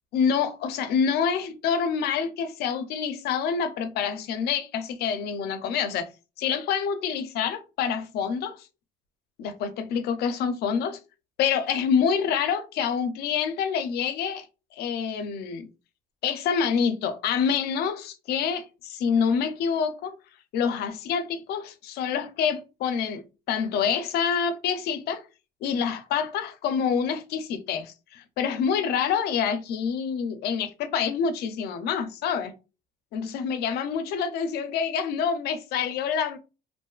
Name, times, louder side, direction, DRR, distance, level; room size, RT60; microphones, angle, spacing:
voice 1, 0.1-6.1 6.4-8.7 9.4-11.0 11.4-14.5 14.7-15.7 16.2-20.2 20.5-25.2 25.6-32.5 33.1-36.4, left 7 dB, 70° left, 0.5 m, -27 dB
2.5 x 2.3 x 2.3 m
cardioid pair, 110°, 17 cm